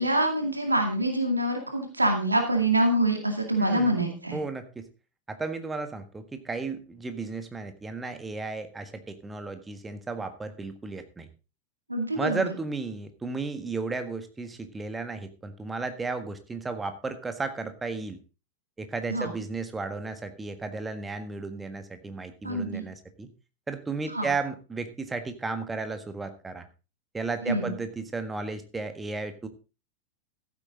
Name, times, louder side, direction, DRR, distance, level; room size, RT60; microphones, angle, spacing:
voice 1, 0.0-4.4 11.9-12.5 19.1-19.3 22.4-22.8 24.1-24.3 27.5-27.7, right 1 dB, 85° right, 4 dB, 2.2 m, -25 dB
voice 2, 3.6-4.0 4.3-4.8 5.3-11.3 12.1-18.2 18.8-23.3 23.7-26.7 27.1-29.5, right 3 dB, 10° right, 9 dB, 1.6 m, -34 dB
14.5 x 8.4 x 3.8 m, 0.31 s
figure-of-eight pair, 90°, 0 cm